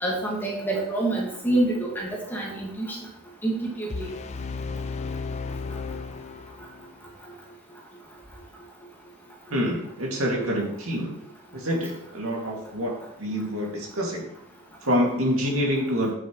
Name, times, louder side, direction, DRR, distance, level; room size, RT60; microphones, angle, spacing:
voice 1, 0.0-3.0 3.4-4.1, right 2 dB, 10° left, -3 dB, 1.9 m, -27 dB
sound 1, 3.9-7.0, left 4 dB, 30° left, 0.4 m, -34 dB
voice 2, 9.5-11.2 11.5-14.3 14.8-16.1, equal, 65° right, -2 dB, 2.4 m, -26 dB
8.7 x 7.2 x 3.2 m, 0.72 s
head